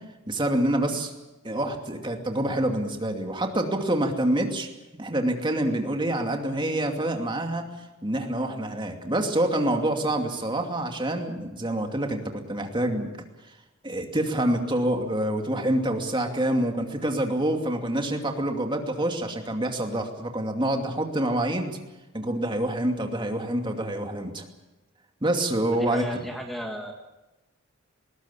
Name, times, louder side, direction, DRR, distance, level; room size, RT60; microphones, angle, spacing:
voice 1, 0.3-1.1 1.4-4.7 5.0-13.1 13.8-21.8 22.1-24.5 25.2-26.3, right 1 dB, 25° right, 3 dB, 2.5 m, -27 dB
voice 2, 25.7-26.9, equal, ahead, 2 dB, 2.0 m, -34 dB
20.5 x 19.5 x 8.4 m, 1.0 s
head